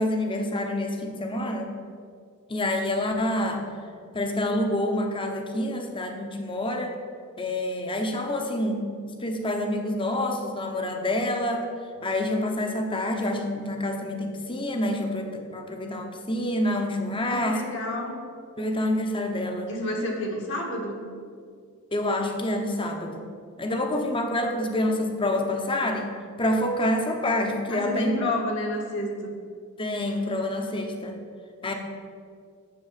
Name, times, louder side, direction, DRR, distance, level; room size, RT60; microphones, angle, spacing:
voice 1, 0.0-1.7 2.5-3.6 4.1-6.9 7.4-11.7 12.0-17.6 18.6-19.7 21.9-23.2 23.6-26.1 26.4-28.4 29.8-31.2 31.6-31.7, left 1 dB, 25° left, 4 dB, 1.0 m, -27 dB
voice 2, 17.2-18.2 19.7-21.0 27.7-29.3, left 1 dB, 55° left, 0 dB, 1.8 m, -30 dB
7.7 x 6.9 x 7.6 m, 2.2 s
head